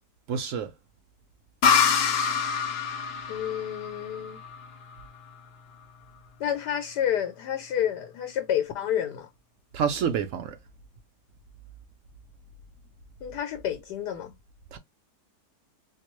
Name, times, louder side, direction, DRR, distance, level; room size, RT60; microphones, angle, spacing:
voice 1, 0.3-0.7 9.7-10.6 14.7-14.8, right 7 dB, 65° right, 0.8 m, -28 dB
sound 1, 1.6-5.2, left 6 dB, 70° left, 0.6 m, -26 dB
voice 2, 3.3-4.4 6.4-9.3 13.2-14.3, left 10 dB, 85° left, 1.2 m, -29 dB
4.3 x 2.1 x 3.0 m
omnidirectional pair, 1.7 m